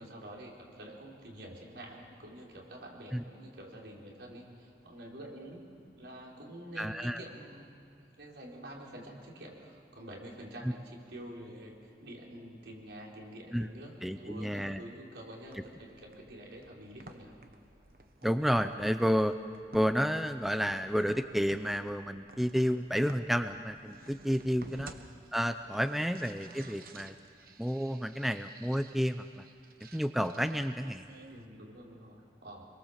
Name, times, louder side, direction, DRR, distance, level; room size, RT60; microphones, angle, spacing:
voice 1, 0.0-5.6 5.9-7.8 8.2-17.3 24.6-25.1 26.1-26.2 31.3-32.7, right 1 dB, 80° right, -2 dB, 4.9 m, -48 dB
voice 2, 6.8-7.2 13.5-13.7 14.0-14.8 18.2-19.3 19.7-24.9 25.3-27.1 27.6-29.4 29.8-31.1, equal, ahead, 9 dB, 0.5 m, -30 dB
sound 1, 15.4-31.4, right 2 dB, 55° right, 1.3 m, -54 dB
26.5 x 22.5 x 7.5 m, 2.3 s
head